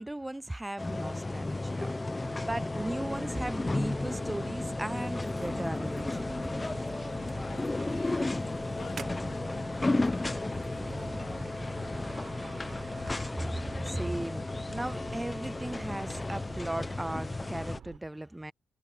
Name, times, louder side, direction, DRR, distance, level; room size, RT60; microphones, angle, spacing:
voice 1, 0.0-6.4 13.4-18.5, right 1 dB, 10° right, 0.3 m, -37 dB
sound 1, 0.8-17.8, left 2 dB, 20° left, 0.8 m, -33 dB
sound 2, 2.2-18.0, right 9 dB, 65° right, 5.0 m, -50 dB
sound 3, 4.9-13.7, right 6 dB, 45° right, 1.2 m, -52 dB
voice 2, 7.0-8.2 8.7-12.8, left 9 dB, 65° left, 1.3 m, -56 dB
cardioid pair, 90°, 0 cm